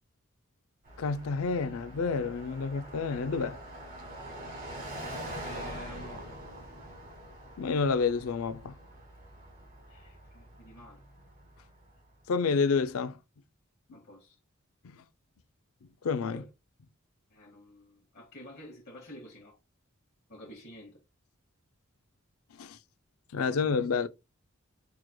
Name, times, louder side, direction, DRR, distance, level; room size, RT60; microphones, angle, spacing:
Car passing by, 0.8-12.0, right 1 dB, 45° right, 1.6 m, -44 dB
voice 1, 1.0-3.6 7.6-8.8 12.3-13.2 16.0-16.4 22.6-22.8 23.3-24.1, left 5 dB, 70° left, 0.4 m, -29 dB
voice 2, 5.4-6.4 9.9-11.0 13.9-14.4 16.3-16.5 17.3-19.6 20.3-21.0, left 1 dB, 50° left, 1.1 m, -49 dB
4.7 x 3.1 x 2.2 m
head